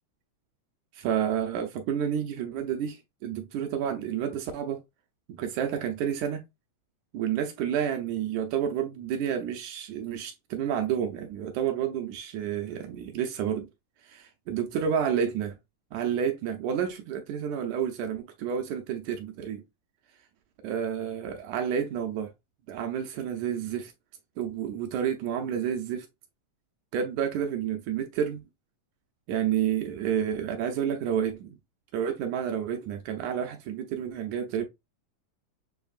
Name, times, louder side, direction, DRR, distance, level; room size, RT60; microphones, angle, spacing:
voice 1, 0.9-4.8 5.3-6.4 7.1-13.7 14.0-15.6 15.9-19.6 20.6-22.3 22.7-23.9 24.4-26.1 26.9-28.4 29.3-31.6 31.9-34.6, right 8 dB, 75° right, 1.9 m, -30 dB
7.1 x 2.9 x 2.4 m
omnidirectional pair, 3.7 m